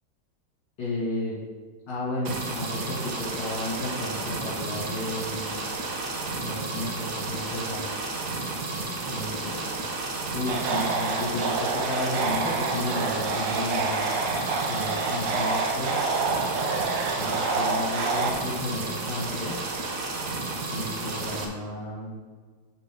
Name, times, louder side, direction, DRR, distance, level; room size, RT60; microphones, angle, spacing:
voice 1, 0.8-1.4 1.9-5.6 6.4-8.0 9.0-9.7 10.3-14.1 14.7-16.0 17.1-19.6 20.7-22.2, left 2 dB, 70° left, -9 dB, 3.0 m, -33 dB
sound 1, 2.2-21.4, right 3 dB, 65° right, 1.6 m, -32 dB
sound 2, 10.5-18.3, right 4 dB, 85° right, 1.7 m, -28 dB
11.5 x 5.4 x 3.8 m, 1.5 s
omnidirectional pair, 1.9 m